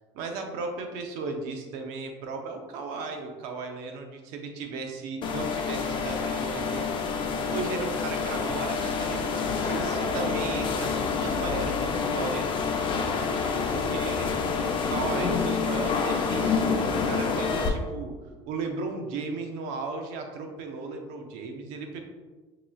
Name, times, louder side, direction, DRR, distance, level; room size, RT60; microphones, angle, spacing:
voice 1, 0.1-7.0 7.5-12.5 13.7-14.3 14.7-18.1 18.4-22.0, right 3 dB, 75° right, 4 dB, 0.7 m, -35 dB
sound 1, 5.2-17.7, left 5 dB, 40° left, 0.5 m, -28 dB
6.0 x 3.0 x 2.3 m, 1.3 s
supercardioid pair, 115°, 13 cm